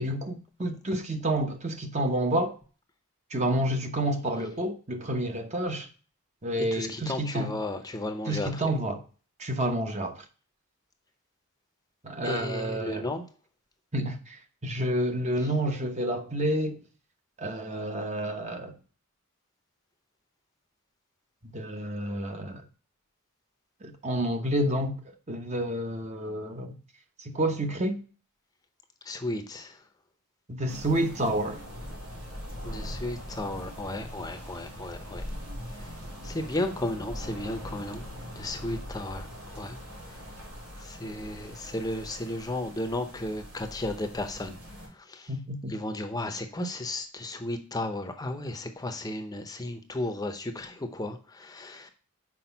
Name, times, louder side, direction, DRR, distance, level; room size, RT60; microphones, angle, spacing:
voice 1, 0.0-2.6 3.3-5.9 6.4-7.5 8.3-9.0 9.4-10.2 12.0-13.0 13.9-16.8 17.4-18.8 21.4-22.6 23.8-26.7 27.2-28.0 30.5-31.6 45.3-45.7, right 1 dB, 30° right, 0.9 m, -29 dB
voice 2, 6.6-8.7 12.2-13.3 15.4-15.5 29.0-29.9 32.6-35.2 35.7-38.1 38.4-40.4 40.8-45.3 45.7-51.9, left 1 dB, 15° left, 0.7 m, -34 dB
sound 1, 30.7-44.9, equal, 90° right, 3.7 m, -41 dB
6.0 x 4.8 x 5.7 m
head